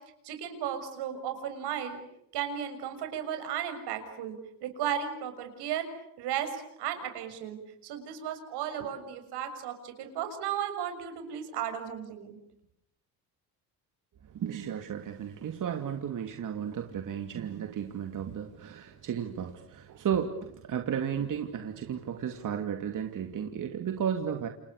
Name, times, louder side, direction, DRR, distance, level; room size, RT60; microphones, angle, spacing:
voice 1, 0.2-2.0 2.3-5.9 6.2-12.4, right 9 dB, 75° right, 7 dB, 6.7 m, -35 dB
voice 2, 14.2-24.5, right 8 dB, 50° right, 5 dB, 2.8 m, -34 dB
29.5 x 28.5 x 6.7 m, 0.77 s
cardioid pair, 95°, 40 cm